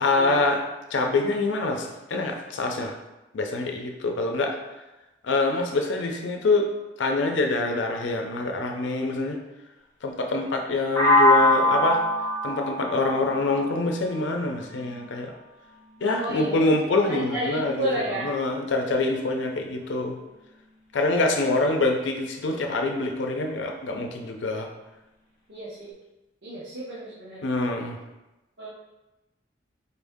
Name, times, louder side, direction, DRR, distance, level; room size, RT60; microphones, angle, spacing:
voice 1, 0.0-0.6 0.9-3.0 3.3-4.6 5.2-6.7 7.0-9.4 10.0-12.0 12.4-15.3 16.0-17.9 18.2-20.2 20.9-24.7 27.4-28.0, left 3 dB, 90° left, 3 dB, 0.5 m, -25 dB
sound 1, 11.0-14.8, left 1 dB, 15° left, 0.7 m, -23 dB
voice 2, 16.0-18.3 19.8-19.9 21.4-21.5 25.5-25.9 26.4-27.4 28.6-28.7, right 1 dB, 85° right, -7 dB, 0.8 m, -32 dB
4.2 x 2.6 x 3.5 m, 1.0 s
head